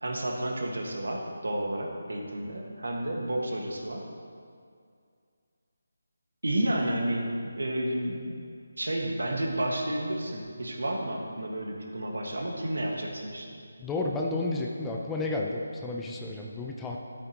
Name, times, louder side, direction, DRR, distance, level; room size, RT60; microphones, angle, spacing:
voice 1, 0.0-4.0 6.4-7.3 7.6-8.4 8.8-13.5, right 1 dB, 85° right, 1 dB, 1.7 m, -31 dB
voice 2, 13.8-17.0, left 2 dB, 5° left, -1 dB, 0.6 m, -31 dB
13.5 x 8.4 x 3.0 m, 2.3 s
figure-of-eight pair, 165°, 0 cm